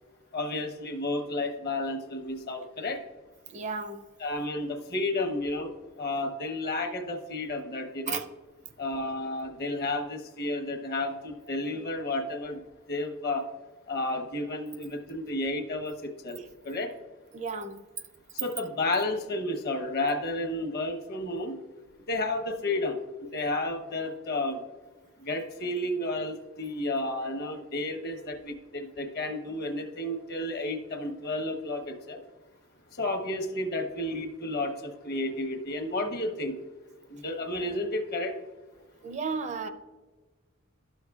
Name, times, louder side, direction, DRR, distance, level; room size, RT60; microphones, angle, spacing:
voice 1, 0.3-3.0 4.2-5.7 6.0-8.2 8.8-12.6 12.9-13.5 13.9-16.9 18.4-21.6 22.1-23.0 23.3-24.6 25.2-32.2 33.0-36.6 37.1-38.3, left 2 dB, 50° left, 5 dB, 0.9 m, -32 dB
voice 2, 3.5-4.1 8.1-8.2 17.3-17.8 39.0-39.7, right 5 dB, 35° right, 8 dB, 0.4 m, -33 dB
12.0 x 6.4 x 2.3 m, 1.3 s
head